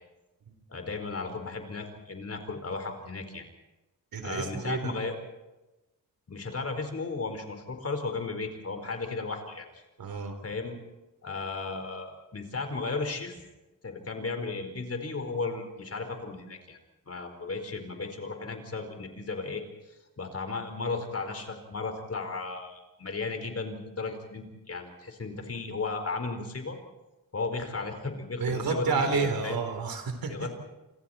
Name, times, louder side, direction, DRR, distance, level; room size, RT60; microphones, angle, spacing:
voice 1, 0.7-3.5 4.2-5.1 6.3-9.7 10.4-10.8 11.2-13.3 13.8-16.8 17.1-26.8 27.3-29.6 30.3-30.6, left 3 dB, 45° left, 6 dB, 4.6 m, -35 dB
voice 2, 4.1-4.9 10.0-10.3 28.4-30.3, right 5 dB, 85° right, 7 dB, 4.0 m, -30 dB
29.0 x 26.0 x 4.4 m, 1.1 s
wide cardioid pair, 105°, 34 cm